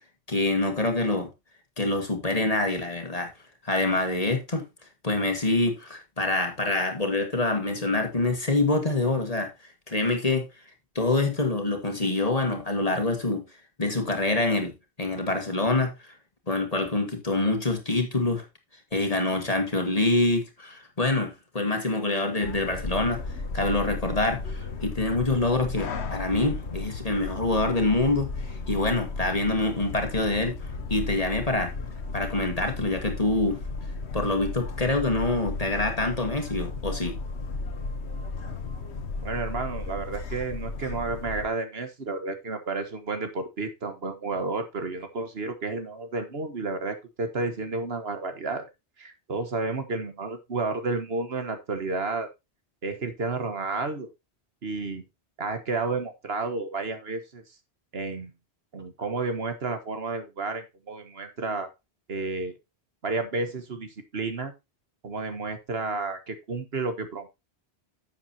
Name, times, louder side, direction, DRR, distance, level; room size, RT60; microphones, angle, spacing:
voice 1, 0.3-1.3 1.8-3.3 3.6-4.7 5.0-9.5 9.9-10.5 11.0-13.4 13.8-14.7 15.0-16.1 16.5-18.5 18.9-23.2 23.5-30.6 30.9-31.7 32.1-33.6 34.1-37.2, left 2 dB, 35° left, 1.9 m, -26 dB
sound 1, 22.4-41.5, left 3 dB, 80° left, 1.4 m, -34 dB
voice 2, 39.2-48.7 49.0-52.3 52.8-54.1 54.6-55.0 55.4-57.4 57.9-58.3 58.7-61.7 62.1-62.5 63.0-64.5 65.0-67.3, right 3 dB, 65° right, 1.6 m, -31 dB
11.0 x 7.5 x 2.8 m
omnidirectional pair, 1.1 m